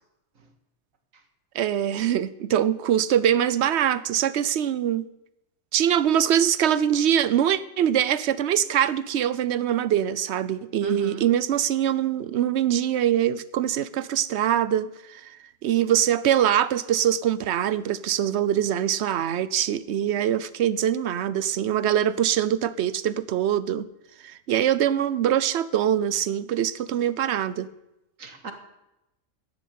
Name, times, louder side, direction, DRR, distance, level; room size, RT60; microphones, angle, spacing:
voice 1, 1.5-5.1 5.7-15.3 15.6-23.9 24.2-27.7, right 10 dB, 60° right, 16 dB, 0.9 m, -23 dB
voice 2, 10.8-11.3 28.2-28.5, right 6 dB, 90° right, 6 dB, 2.2 m, -34 dB
11.0 x 10.5 x 9.4 m, 0.90 s
omnidirectional pair, 1.4 m